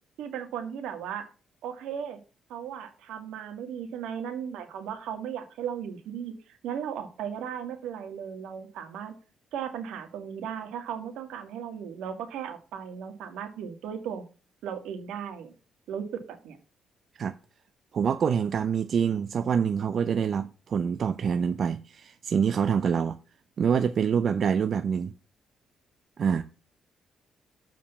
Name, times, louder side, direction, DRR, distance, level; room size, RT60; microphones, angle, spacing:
voice 1, 0.2-1.3 1.6-2.2 2.5-6.3 6.6-9.1 9.5-14.2 14.6-15.5 15.9-16.6, right 8 dB, 85° right, 1.9 m, -36 dB
voice 2, 17.9-23.2 23.6-25.1 26.2-26.4, right 7 dB, 55° right, 0.6 m, -26 dB
7.4 x 5.0 x 6.9 m
cardioid pair, 90°, 0 cm